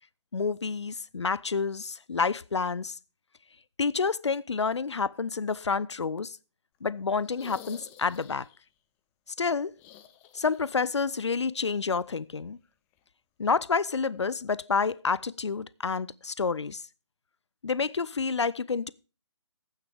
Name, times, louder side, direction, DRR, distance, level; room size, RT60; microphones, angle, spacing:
voice 1, 0.3-3.0 3.8-6.4 6.8-8.5 9.4-9.7 10.3-12.6 13.4-16.8 17.6-18.9, left 5 dB, 70° left, 0.5 m, -29 dB
sound 1, 7.2-8.6 9.7-10.9 11.2-11.3 12.9-13.0, left 10 dB, 10° left, 0.4 m, -49 dB
12.0 x 8.8 x 3.5 m
figure-of-eight pair, 140°, 15 cm